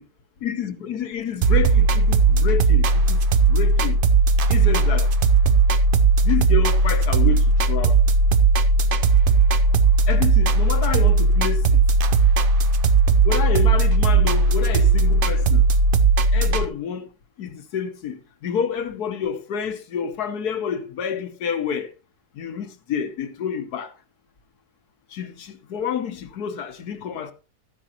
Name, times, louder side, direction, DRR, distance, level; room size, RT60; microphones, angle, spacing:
voice 1, 0.4-3.2 3.5-4.0 4.5-5.1 6.2-8.0 10.1-11.8 13.2-15.6 16.3-17.1 17.4-21.9 22.4-23.9 25.1-27.3, left 7 dB, 70° left, 1.5 m, -29 dB
sound 1, 1.4-16.6, right 3 dB, 65° right, 0.5 m, -17 dB
13.0 x 10.0 x 2.9 m
omnidirectional pair, 1.8 m